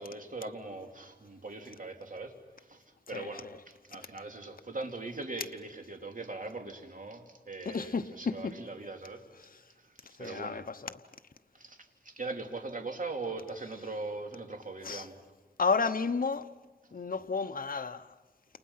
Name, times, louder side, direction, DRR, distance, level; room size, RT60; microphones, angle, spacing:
voice 1, 0.0-2.3 2.6-9.2 9.8-10.6 11.5-11.8 12.0-15.2, right 3 dB, 45° right, 2.9 m, -41 dB
voice 2, 3.1-3.6 7.6-8.6 9.4-9.6 10.2-11.0 14.8-15.1 15.6-16.5 16.9-18.1, left 4 dB, 50° left, 0.9 m, -32 dB
29.5 x 28.5 x 5.7 m
wide cardioid pair, 65°, 19 cm